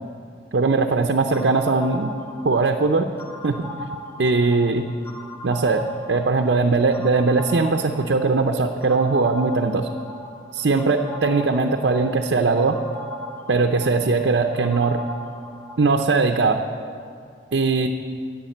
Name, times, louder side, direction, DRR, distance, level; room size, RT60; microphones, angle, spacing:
voice 1, 0.5-2.1 2.4-3.1 3.4-3.6 4.2-4.9 5.4-9.9 10.5-12.8 13.5-15.0 15.8-16.6 17.5-17.9, right 3 dB, 80° right, 4 dB, 0.7 m, -20 dB
sound 1, 1.3-16.1, left 1 dB, 15° left, 1.1 m, -38 dB
11.5 x 9.2 x 7.9 m, 2.2 s
head